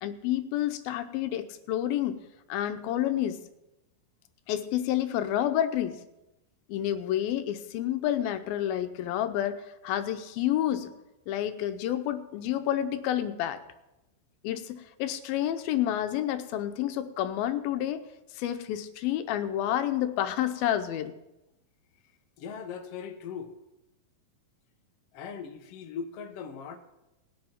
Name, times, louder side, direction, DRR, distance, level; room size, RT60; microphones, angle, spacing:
voice 1, 0.0-2.2 2.5-3.4 4.5-6.0 6.7-10.9 11.3-13.6 14.4-18.0 18.4-21.1, left 11 dB, 85° left, 9 dB, 2.6 m, -29 dB
voice 2, 22.4-23.5 25.1-26.8, left 6 dB, 70° left, 5 dB, 1.5 m, -39 dB
19.5 x 7.6 x 4.5 m, 0.94 s
omnidirectional pair, 4.1 m